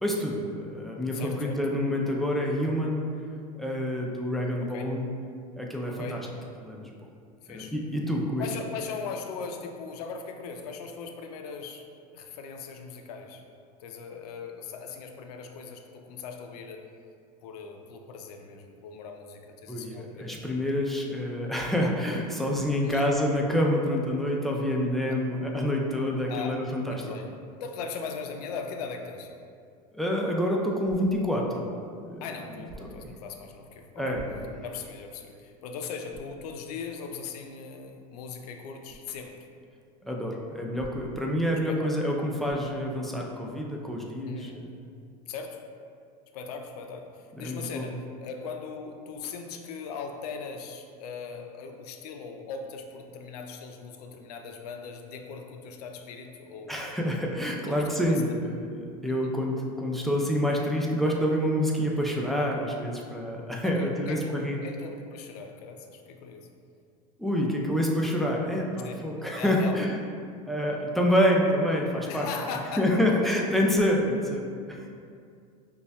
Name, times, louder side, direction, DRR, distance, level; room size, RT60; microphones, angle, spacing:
voice 1, 0.0-3.0 3.6-5.1 5.6-6.2 6.6-6.9 7.5-8.4 19.7-27.0 29.9-31.7 32.0-32.2 32.8-33.1 34.0-34.5 40.0-44.7 47.4-47.8 56.7-64.6 67.2-70.0 70.5-72.3 72.8-74.9, equal, ahead, -2 dB, 0.4 m, -27 dB
voice 2, 1.1-1.6 4.6-4.9 5.8-6.2 7.4-7.7 8.4-11.9 12.1-13.4 13.8-16.8 17.4-20.4 22.8-23.1 25.1-25.2 26.3-26.6 26.9-27.3 27.6-29.3 32.2-34.2 34.6-39.5 41.7-41.9 44.3-44.7 45.3-45.6 46.3-56.9 57.7-58.0 63.6-66.5 68.8-69.0 69.4-69.8 72.1-72.9, left 5 dB, 80° left, 4 dB, 0.4 m, -39 dB
sound 1, 30.8-31.4 32.6-33.1 34.1-34.7 35.2-35.3 36.1-36.4 38.8-39.1 40.7-41.3 42.4-42.8, right 2 dB, 55° right, 0.7 m, -47 dB
5.2 x 2.3 x 2.2 m, 2.3 s
hypercardioid pair, 105°, 20 cm